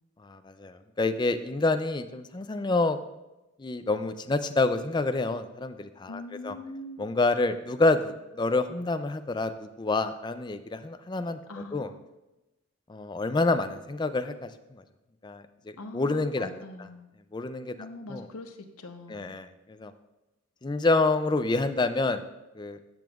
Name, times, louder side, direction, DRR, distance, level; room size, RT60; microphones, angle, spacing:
voice 1, 0.2-3.0 3.6-6.5 7.0-11.4 11.7-11.9 12.9-14.8 15.2-16.5 17.3-17.8 18.1-18.3 19.1-19.9 20.6-22.2 22.6-22.8, left 3 dB, 20° left, 10 dB, 0.3 m, -28 dB
voice 2, 6.1-7.1 11.5-11.9 15.8-17.1 17.8-19.3, left 2 dB, 80° left, 6 dB, 0.9 m, -42 dB
13.5 x 7.0 x 2.4 m, 0.99 s
head